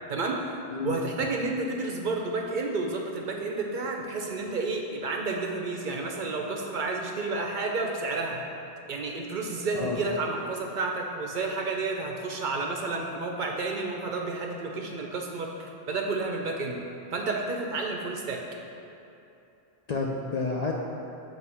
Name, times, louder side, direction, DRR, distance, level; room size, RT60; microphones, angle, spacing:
voice 1, 0.1-0.4 0.8-8.4 8.9-16.8 17.1-18.4, right 3 dB, 60° right, 1 dB, 0.6 m, -31 dB
voice 2, 19.9-20.7, left 3 dB, 55° left, -2 dB, 0.5 m, -30 dB
7.7 x 2.6 x 5.5 m, 2.9 s
omnidirectional pair, 1.1 m